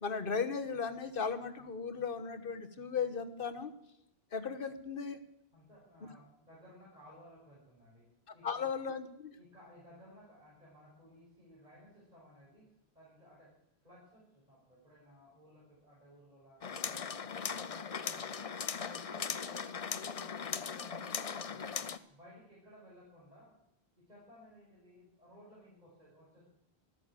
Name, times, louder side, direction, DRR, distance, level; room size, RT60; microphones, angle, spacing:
voice 1, 0.0-3.7 4.3-5.2 8.4-9.4, left 5 dB, 60° left, 9 dB, 1.4 m, -36 dB
voice 2, 5.5-8.1 8.3-8.7 9.4-12.7 12.9-13.5 13.8-18.5 18.9-21.8 22.1-23.6 24.0-26.4, equal, 40° right, -7 dB, 6.1 m, -58 dB
sound 1, 16.6-22.0, left 6 dB, 40° left, 0.6 m, -39 dB
13.5 x 12.0 x 8.3 m, 0.82 s
omnidirectional pair, 1.1 m